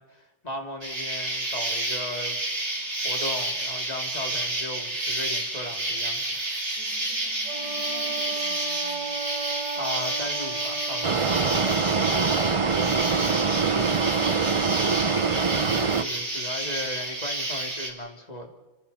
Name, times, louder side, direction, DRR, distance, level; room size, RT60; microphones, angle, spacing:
voice 1, 0.0-2.4 3.0-6.5 9.7-11.4 15.5-18.5, left 1 dB, 25° left, 3 dB, 3.0 m, -37 dB
Insect, 0.8-17.9, right 2 dB, 40° right, 3.8 m, -30 dB
voice 2, 6.8-9.2, left 1 dB, 50° left, -3 dB, 6.3 m, -48 dB
Wind instrument woodwind instrument, 7.4-11.7, right 4 dB, 85° right, 2.1 m, -35 dB
sound 1, 11.0-16.0, right 5 dB, 55° right, 0.3 m, -24 dB
30.0 x 27.0 x 4.3 m, 1.2 s
omnidirectional pair, 1.8 m